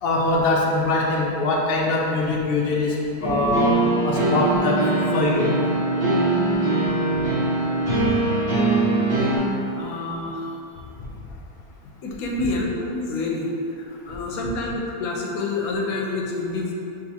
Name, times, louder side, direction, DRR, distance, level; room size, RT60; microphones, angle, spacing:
voice 1, 0.0-3.0 3.2-3.8 4.0-4.8 5.1-5.5 7.9-8.1, left 2 dB, 85° left, -3 dB, 0.5 m, -22 dB
sound 1, 3.2-9.4, right 2 dB, 40° right, 1.7 m, -22 dB
voice 2, 9.4-10.5 12.0-16.7, left 2 dB, 70° left, -1 dB, 0.9 m, -28 dB
6.4 x 2.5 x 2.8 m, 2.7 s
omnidirectional pair, 1.8 m